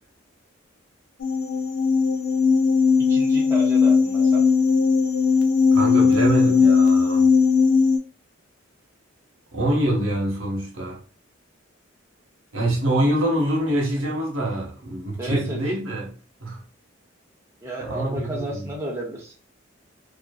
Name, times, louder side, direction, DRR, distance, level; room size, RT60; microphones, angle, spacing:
sound 1, 1.2-8.0, left 5 dB, 60° left, 0.4 m, -18 dB
voice 1, 3.1-4.5 15.2-15.6 17.6-19.3, right 1 dB, 15° right, 0.5 m, -32 dB
voice 2, 5.7-7.3 9.5-11.0 12.5-16.1 16.4-16.6 17.8-18.7, right 1 dB, 80° right, 0.9 m, -25 dB
2.6 x 2.4 x 2.2 m
head